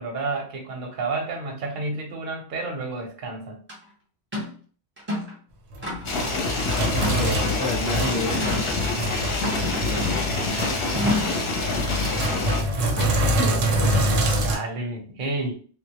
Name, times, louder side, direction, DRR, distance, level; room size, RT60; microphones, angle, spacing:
voice 1, 0.0-3.6 7.8-8.1 8.8-9.4 9.8-10.4 14.4-15.5, right 3 dB, 50° right, 1 dB, 0.7 m, -31 dB
sound 1, 3.7-3.8 4.3-4.5 5.0-5.4 5.8-6.3 7.0-7.6 8.4-8.7 9.4-10.3 10.9-11.4, left 1 dB, 10° right, 0.6 m, -29 dB
Sink (filling or washing), 5.7-14.6, equal, 80° right, 0.9 m, -25 dB
sound 2, 6.0-12.6, left 3 dB, 60° left, 0.8 m, -27 dB
voice 2, 6.6-9.0 13.0-14.4, left 2 dB, 30° left, -3 dB, 0.3 m, -31 dB
2.2 x 2.0 x 2.8 m, 0.42 s
omnidirectional pair, 1.3 m